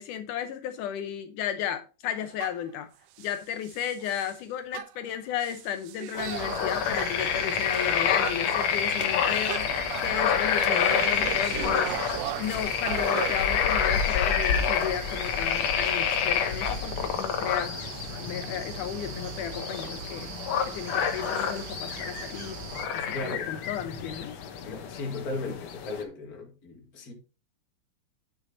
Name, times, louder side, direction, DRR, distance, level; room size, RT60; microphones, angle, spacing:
voice 1, 0.0-2.9 3.2-20.4 20.6-22.6 22.9-24.4, left 9 dB, 80° left, 2.2 m, -34 dB
sound 1, 2.1-2.8 3.2-4.4 4.7-7.3 7.6-7.9 8.2-13.4, right 14 dB, 85° right, 2.2 m, -38 dB
sound 2, 6.1-26.0, left 7 dB, 60° left, 2.1 m, -28 dB
sound 3, 6.2-22.9, right 6 dB, 60° right, 2.1 m, -41 dB
voice 2, 23.1-23.6 24.6-27.1, left 3 dB, 30° left, 2.2 m, -36 dB
9.6 x 6.6 x 4.0 m
omnidirectional pair, 3.7 m